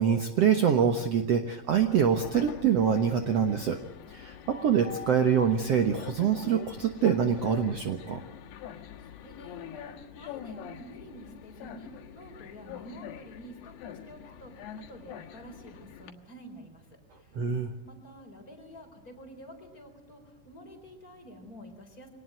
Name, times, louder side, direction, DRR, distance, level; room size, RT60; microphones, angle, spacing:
voice 1, 0.0-3.8 4.1-8.2 17.3-17.7, right 7 dB, 75° right, 6 dB, 1.4 m, -25 dB
Train, 1.7-16.1, left 9 dB, 75° left, 3.4 m, -44 dB
voice 2, 9.0-16.9 17.2-17.4 17.8-22.1, equal, 20° left, 4 dB, 4.0 m, -49 dB
24.0 x 19.0 x 9.1 m, 0.94 s
omnidirectional pair, 4.9 m